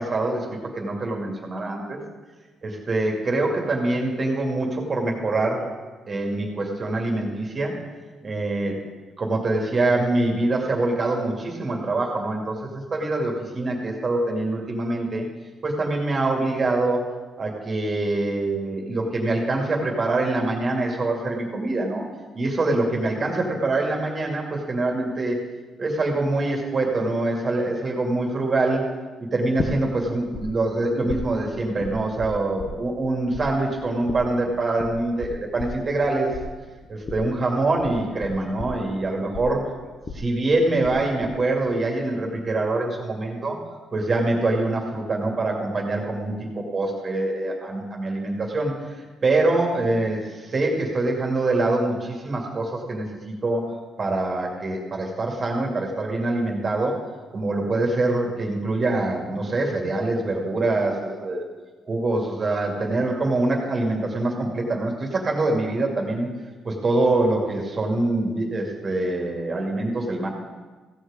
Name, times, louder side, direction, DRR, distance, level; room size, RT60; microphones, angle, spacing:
voice 1, 0.0-2.0 2.6-5.7 6.1-7.8 8.2-8.8 9.2-15.3 15.6-17.1 17.4-22.1 22.3-25.4 25.8-28.9 29.2-36.4 36.9-39.7 40.1-43.6 43.9-57.0 57.3-61.4 61.9-66.3 66.6-70.3, right 2 dB, 35° right, 0 dB, 2.4 m, -24 dB
sound 1, 29.6-30.4 30.7-33.1 33.3-41.0 41.2-41.7, left 4 dB, 35° left, 1.2 m, -34 dB
16.0 x 6.5 x 5.1 m, 1.3 s
cardioid pair, 90°, 0 cm